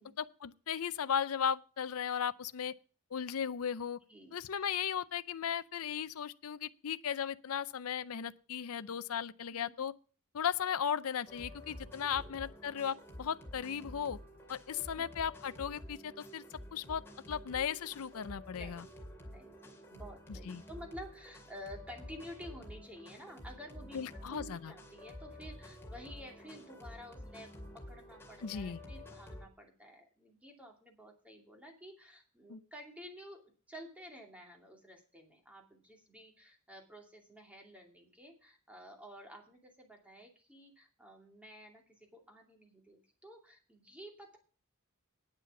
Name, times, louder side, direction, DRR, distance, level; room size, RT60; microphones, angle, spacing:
voice 1, 0.2-2.7 3.1-4.0 4.3-9.9 10.3-14.2 14.5-16.4 16.7-17.0 17.3-18.8 20.3-20.6 23.9-24.7 28.4-28.8 32.5-32.6, left 8 dB, 70° left, 0.5 m, -36 dB
voice 2, 9.5-9.8 12.2-12.4 14.7-15.1 18.5-18.9 19.2-44.4, equal, 5° right, 2.5 m, -52 dB
sound 1, 11.3-29.5, left 1 dB, 10° left, 2.4 m, -50 dB
9.7 x 7.5 x 7.0 m
head